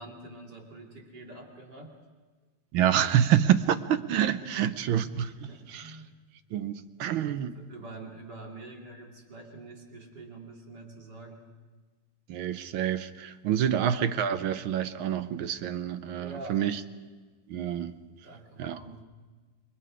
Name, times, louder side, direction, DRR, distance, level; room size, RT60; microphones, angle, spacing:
voice 1, 0.0-1.9 3.1-3.5 4.4-6.1 6.6-6.8 7.5-11.4 16.2-16.6 18.1-19.0, right 2 dB, 55° right, 0 dB, 3.4 m, -46 dB
voice 2, 2.7-5.3 5.7-5.8 6.5-7.5 12.3-16.8 17.5-17.9 18.6-18.8, right 10 dB, 80° right, 11 dB, 1.6 m, -27 dB
28.0 x 22.0 x 4.9 m, 1.3 s
omnidirectional pair, 2.3 m